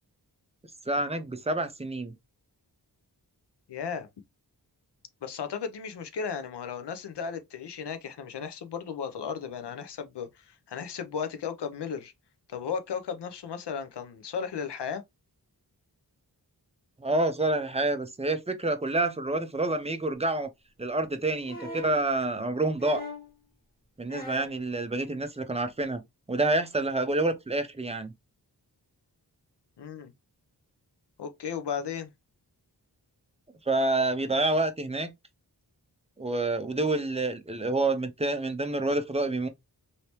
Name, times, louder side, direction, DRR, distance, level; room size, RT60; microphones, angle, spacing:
voice 1, 0.9-2.1 17.0-20.5 20.8-23.0 24.0-26.0 26.3-28.1 33.7-35.1 36.2-39.5, right 2 dB, 15° right, 0.5 m, -28 dB
voice 2, 3.7-4.1 5.2-12.1 12.5-15.0 29.8-30.1 31.2-32.1, left 6 dB, 85° left, 0.6 m, -35 dB
sound 1, 21.4-22.0 22.8-23.3 24.1-24.6 25.8-25.9, left 1 dB, 25° left, 1.6 m, -40 dB
3.1 x 2.8 x 2.9 m
wide cardioid pair, 75°, 40 cm